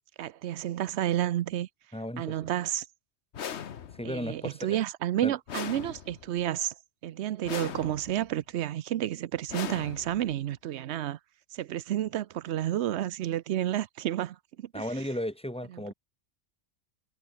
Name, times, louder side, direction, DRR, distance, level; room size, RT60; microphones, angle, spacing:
voice 1, 0.2-1.7 2.2-2.8 4.0-6.7 7.0-11.2 11.5-14.8, right 12 dB, 70° right, 0.9 m, -31 dB
voice 2, 1.9-2.4 3.9-4.8 5.2-5.3 14.7-15.9, equal, 5° left, 4.1 m, -35 dB
sound 1, 3.3-4.2 5.5-6.4 7.4-8.3 9.5-10.4, left 8 dB, 70° left, 1.2 m, -39 dB
omnidirectional pair, 1.2 m